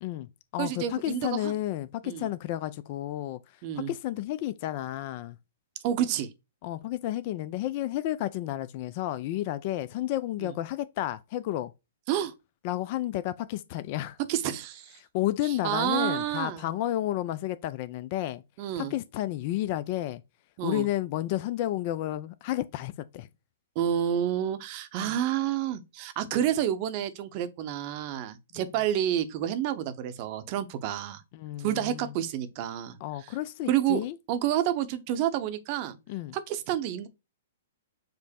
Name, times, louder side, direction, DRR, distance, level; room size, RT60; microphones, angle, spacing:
voice 1, 0.0-5.4 6.6-11.7 12.6-14.2 15.0-18.4 18.8-20.2 20.6-23.3 25.0-25.2 31.3-32.1 33.0-34.2 36.1-36.4, left 14 dB, 45° left, 0.3 m, -31 dB
voice 2, 0.6-1.5 2.0-2.3 3.6-3.9 5.8-6.3 10.4-10.5 12.1-12.3 14.3-15.0 15.6-16.6 18.6-18.9 20.6-20.9 23.8-31.2 31.6-33.0 33.7-34.0 34.3-36.0 36.3-37.1, right 11 dB, 45° right, 0.7 m, -29 dB
5.1 x 2.1 x 4.3 m
hypercardioid pair, 125°, 0 cm